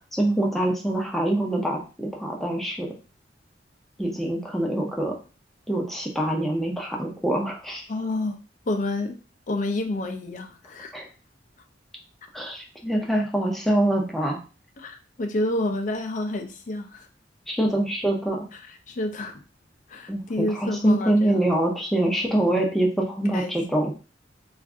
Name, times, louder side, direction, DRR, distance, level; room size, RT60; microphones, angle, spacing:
voice 1, 0.1-2.9 4.0-5.1 5.7-7.8 10.9-11.1 12.3-14.4 17.5-18.4 20.1-23.9, right 1 dB, ahead, -1 dB, 0.6 m, -25 dB
voice 2, 7.9-9.2 9.5-10.9 14.8-17.1 18.9-19.3 19.9-21.4 23.3-23.5, left 2 dB, 45° left, 5 dB, 0.5 m, -29 dB
2.6 x 2.4 x 3.4 m, 0.34 s
head